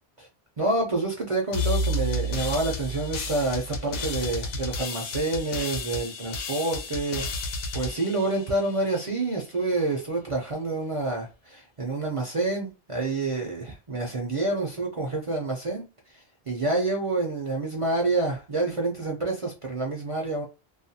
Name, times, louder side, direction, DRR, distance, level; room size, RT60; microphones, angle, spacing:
voice 1, 0.6-7.2 7.7-15.8 16.5-20.4, right 2 dB, 40° right, 0.5 m, -28 dB
sound 1, 1.5-9.0, left 1 dB, 80° left, 0.9 m, -31 dB
2.4 x 2.2 x 2.7 m
omnidirectional pair, 1.1 m